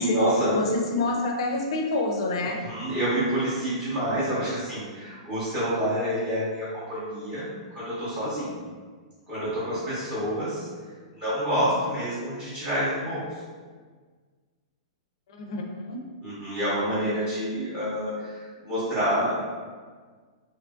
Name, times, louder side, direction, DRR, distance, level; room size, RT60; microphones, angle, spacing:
voice 1, 0.0-0.6 2.4-7.4 7.7-8.6 9.3-10.7 11.1-13.4 16.2-19.4, equal, 20° right, -13 dB, 0.8 m, -28 dB
voice 2, 0.5-2.6 15.3-16.0, left 2 dB, 55° left, 2 dB, 0.4 m, -27 dB
2.7 x 2.4 x 2.3 m, 1.5 s
hypercardioid pair, 170°, 4 cm